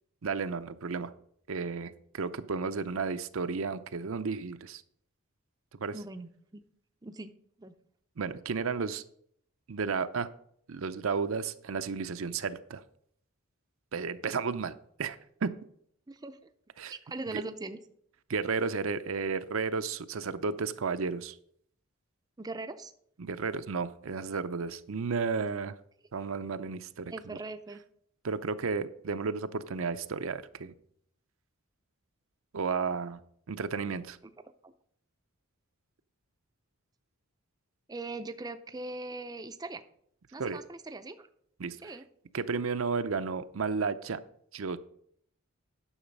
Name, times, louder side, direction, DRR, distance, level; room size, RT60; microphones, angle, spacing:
voice 1, 0.2-1.1 1.5-4.8 5.8-5.9 8.2-9.0 9.7-10.3 10.7-12.8 13.9-15.5 16.8-16.9 17.3-17.4 18.3-21.3 23.2-25.7 26.1-27.1 28.2-30.7 32.5-33.2 33.5-34.2 40.4-40.6 41.6-41.9 42.3-44.2 44.5-44.8, right 5 dB, 65° right, 11 dB, 0.5 m, -33 dB
voice 2, 5.9-6.6 7.0-7.3 7.6-7.7 16.1-16.4 16.9-17.8 22.4-22.9 27.1-27.8 34.6-34.7 37.9-39.8 40.3-41.3 41.8-42.1, right 2 dB, 20° right, 9 dB, 0.5 m, -40 dB
10.0 x 6.5 x 5.3 m, 0.66 s
head